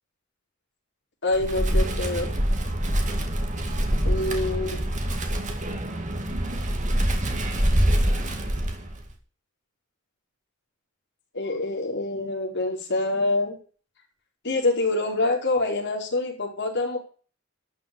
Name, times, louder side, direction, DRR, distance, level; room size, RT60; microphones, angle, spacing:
voice 1, 1.2-2.3 4.0-4.8 11.3-13.6 14.4-17.0, left 2 dB, 55° left, 1 dB, 4.5 m, -26 dB
Wind, 1.3-9.1, right 1 dB, 35° right, 2.3 m, -25 dB
12.5 x 6.1 x 8.7 m, 0.39 s
head